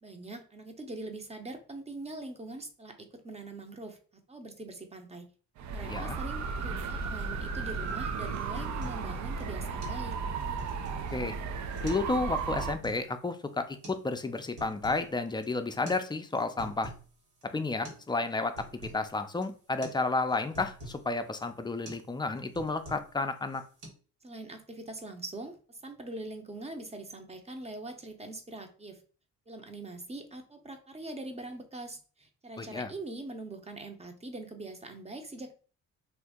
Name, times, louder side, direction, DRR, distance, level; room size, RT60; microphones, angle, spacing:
voice 1, 0.0-4.0 4.3-5.3 5.7-10.2 24.2-29.0 29.5-35.5, right 2 dB, 20° right, 6 dB, 0.7 m, -43 dB
sound 1, 5.6-12.7, right 5 dB, 65° right, 0.5 m, -34 dB
voice 2, 5.8-6.2 11.1-11.3 11.8-16.9 17.5-18.5 18.8-23.6 32.6-32.9, left 3 dB, 15° left, 8 dB, 0.4 m, -31 dB
sound 2, 7.9-8.0 8.3-9.1 9.4-9.5 9.8-10.0 10.4-11.1 11.7-12.1 12.4-13.0 13.8-14.0 14.4-15.1 15.4-15.5 15.9-16.0 16.3-17.1 17.4-17.5 17.8-18.1 18.3-19.0 19.4-19.6 19.8-20.0 20.3-21.0 21.4-21.6 21.8-22.1 22.4-23.2 23.5-23.9, right 1 dB, 90° right, 1.4 m, -46 dB
2.8 x 2.6 x 3.5 m, 0.39 s
cardioid pair, 90°, 30 cm